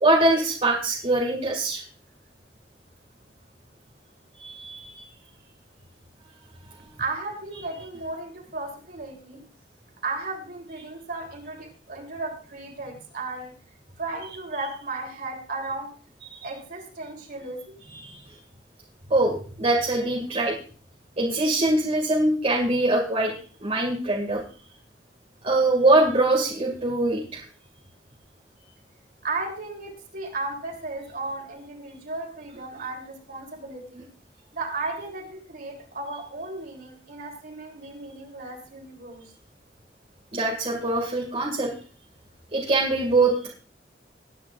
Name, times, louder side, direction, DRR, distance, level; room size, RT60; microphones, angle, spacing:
voice 1, 0.0-1.8 4.4-5.0 16.3-16.4 17.9-18.2 19.1-20.5 21.2-23.3 23.6-24.4 25.4-27.4 40.3-41.7 42.5-43.5, right 2 dB, 35° right, -2 dB, 2.2 m, -23 dB
voice 2, 7.0-9.4 10.0-13.5 14.0-15.9 16.4-17.8 29.2-34.1 34.5-39.2, right 3 dB, 55° right, 1 dB, 3.6 m, -35 dB
21.0 x 9.7 x 2.5 m, 0.41 s
head